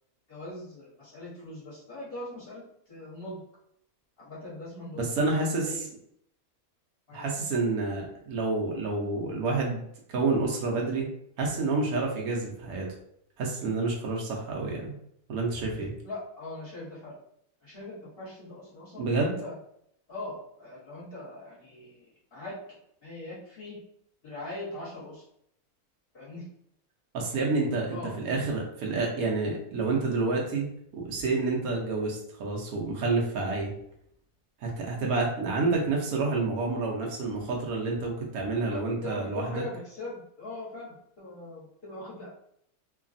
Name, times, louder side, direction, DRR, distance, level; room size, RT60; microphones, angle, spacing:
voice 1, 0.3-3.4 4.2-5.9 7.1-7.2 16.0-17.2 17.6-19.6 20.1-22.0 22.3-22.6 23.0-23.8 24.2-25.2 26.1-26.4 27.9-28.1 38.7-42.3, left 2 dB, 40° left, -8 dB, 1.3 m, -41 dB
voice 2, 5.0-5.9 7.1-9.8 10.1-11.1 11.4-12.9 13.4-14.9 15.3-15.9 19.0-19.3 27.1-28.0 28.2-30.7 30.9-33.7 34.6-39.6, right 3 dB, 75° right, -1 dB, 1.1 m, -28 dB
3.1 x 2.3 x 2.5 m, 0.71 s
omnidirectional pair, 1.6 m